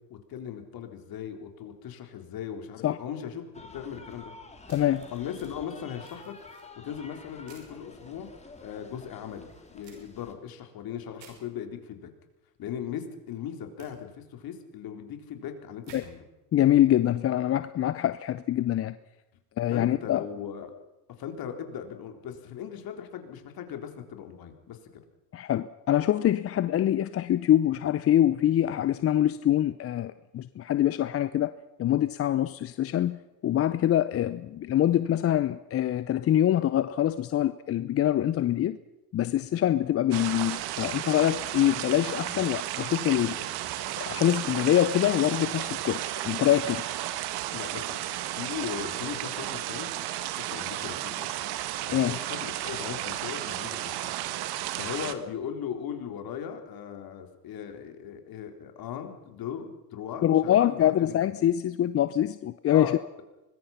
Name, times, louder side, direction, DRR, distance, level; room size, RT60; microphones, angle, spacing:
voice 1, 0.1-3.4 3.7-4.3 5.1-6.4 6.8-8.3 8.6-9.5 9.7-12.1 12.6-16.2 19.7-20.7 21.2-24.8 42.3-42.5 43.3-43.4 47.5-48.0 48.3-49.9 50.4-51.3 51.9-54.1 54.8-61.3 62.7-62.9, left 8 dB, 45° left, 5 dB, 3.8 m, -38 dB
sound 1, 3.5-10.3, left 2 dB, 15° left, 3.6 m, -49 dB
voice 2, 4.7-5.1 15.9-16.0 16.5-19.0 19.6-20.2 25.3-31.5 31.8-33.2 33.4-38.8 39.1-43.4 44.0-46.8 51.9-52.1 60.2-63.0, left 12 dB, 30° left, 14 dB, 0.7 m, -24 dB
sound 2, 4.7-5.5 6.0-6.6 7.5-7.7 9.8-10.0 11.2-11.4 13.8-13.9 15.8-16.0, right 6 dB, 85° right, 6.0 m, -52 dB
sound 3, 40.1-55.1, right 13 dB, 50° right, 1.8 m, -33 dB
24.5 x 21.0 x 5.8 m, 0.98 s
hypercardioid pair, 90°, 50 cm